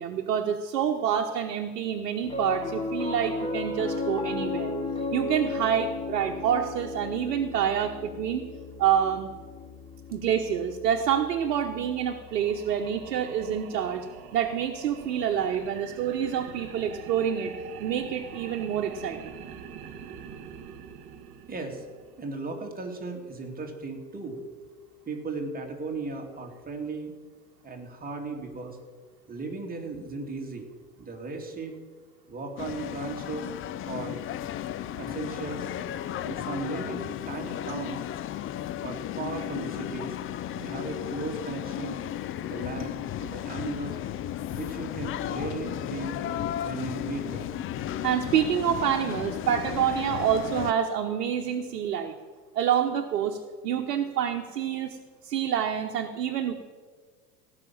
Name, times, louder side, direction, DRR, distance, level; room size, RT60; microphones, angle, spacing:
voice 1, 0.0-4.7 5.1-8.4 8.8-9.3 10.1-14.1 14.3-17.5 17.8-19.3 48.0-52.1 52.5-53.4 53.6-55.0 55.2-56.5, right 9 dB, 70° right, 3 dB, 1.2 m, -27 dB
Piano, 2.2-12.7, left 3 dB, 10° left, 2.3 m, -35 dB
sound 1, 12.0-22.3, right 7 dB, 50° right, 2.0 m, -45 dB
voice 2, 21.5-21.8 22.2-24.4 25.1-27.1 27.6-28.8 29.3-30.7 31.0-31.8 32.3-33.5 33.8-34.2 34.9-35.7 36.2-38.0 38.8-40.2 40.5-42.0 42.4-44.0 44.5-46.2 46.6-47.5, right 3 dB, 20° right, 1 dB, 2.7 m, -36 dB
sound 2, 32.6-50.7, left 11 dB, 25° left, 0.5 m, -34 dB
17.0 x 6.2 x 8.6 m, 1.5 s
hypercardioid pair, 85°, 47 cm